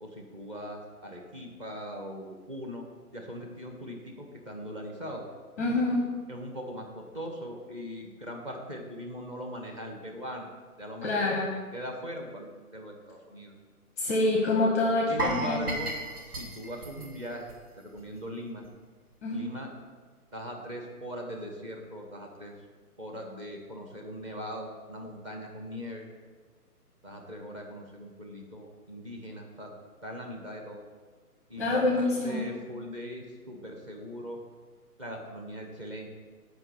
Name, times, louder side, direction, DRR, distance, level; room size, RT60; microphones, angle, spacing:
voice 1, 0.0-2.8 3.1-5.2 6.3-10.5 10.8-13.5 15.1-15.9 16.3-17.5 17.8-18.6 19.3-19.7 20.3-22.5 23.0-26.1 27.0-29.7 30.0-30.9 31.5-34.4 35.0-36.1, equal, 20° right, 1 dB, 0.9 m, -40 dB
voice 2, 5.6-6.1 11.0-11.5 14.0-15.7 19.2-19.5 31.6-32.5, left 2 dB, 10° left, -1 dB, 0.7 m, -26 dB
sound 1, 15.2-18.2 18.5-18.7 19.1-19.2, right 1 dB, 75° right, 1.9 m, -35 dB
7.9 x 5.2 x 6.6 m, 1.4 s
figure-of-eight pair, 145°, 46 cm